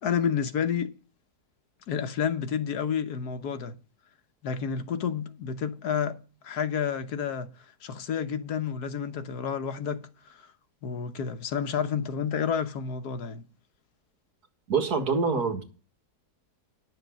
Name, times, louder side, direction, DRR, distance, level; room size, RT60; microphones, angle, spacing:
voice 1, 0.0-0.9 1.9-3.7 4.4-6.2 6.4-7.5 7.8-10.0 10.8-13.4, left 7 dB, 80° left, 1.5 m, -30 dB
voice 2, 14.7-15.6, right 5 dB, 75° right, 2.4 m, -25 dB
10.5 x 6.6 x 7.2 m
omnidirectional pair, 1.7 m